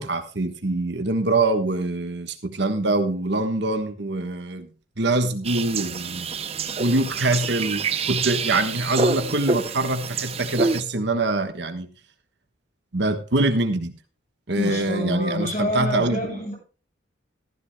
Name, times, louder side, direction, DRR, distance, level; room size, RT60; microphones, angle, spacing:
voice 1, 0.0-4.7 5.0-6.3 6.8-11.9 12.9-13.9 14.5-16.4, right 2 dB, 60° right, 7 dB, 1.3 m, -24 dB
sound 1, 5.4-10.8, right 4 dB, 30° right, 0.6 m, -27 dB
voice 2, 14.6-16.5, left 1 dB, 40° left, -1 dB, 7.4 m, -27 dB
15.0 x 13.5 x 2.2 m, 0.36 s
head